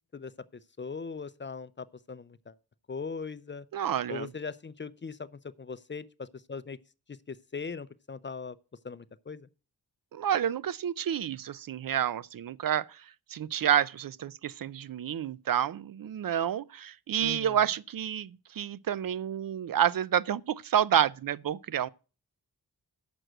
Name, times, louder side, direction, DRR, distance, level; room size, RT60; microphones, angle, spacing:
voice 1, 0.1-2.5 2.9-3.7 4.1-6.8 7.1-8.6 8.8-9.5 17.2-17.6, left 5 dB, 30° left, 0.5 m, -40 dB
voice 2, 3.7-4.3 10.1-13.0 13.3-21.9, right 10 dB, 65° right, 0.5 m, -29 dB
7.7 x 6.1 x 7.9 m
wide cardioid pair, 90°, 38 cm